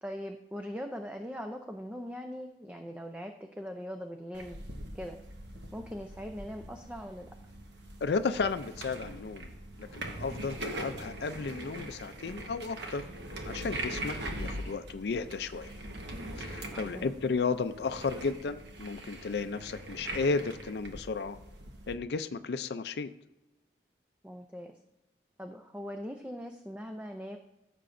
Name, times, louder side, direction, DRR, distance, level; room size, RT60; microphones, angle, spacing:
voice 1, 0.0-4.6 4.9-5.2 5.7-7.3 16.7-17.1 24.2-24.7 25.4-27.4, equal, 5° right, 4 dB, 0.4 m, -41 dB
sound 1, 4.3-21.9, right 1 dB, 85° right, 1.2 m, -42 dB
voice 2, 8.0-9.5 9.8-13.1 13.5-15.7 16.4-21.4 21.9-23.1, left 4 dB, 70° left, 10 dB, 0.4 m, -33 dB
14.5 x 6.7 x 2.6 m, 1.0 s
head